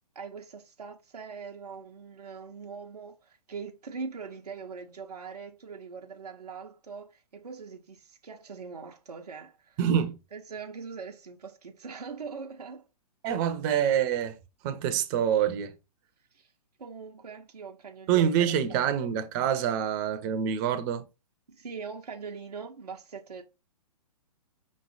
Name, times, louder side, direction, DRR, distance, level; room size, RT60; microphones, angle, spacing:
voice 1, 0.1-9.8 10.3-12.8 13.4-13.5 16.3-16.5 16.8-18.8 21.5-23.4, right 5 dB, 85° right, 0.8 m, -42 dB
voice 2, 9.8-10.2 13.2-14.4 14.6-15.7 18.1-21.0, right 9 dB, 30° right, 0.6 m, -26 dB
5.4 x 3.2 x 2.7 m
hypercardioid pair, 125°, 20 cm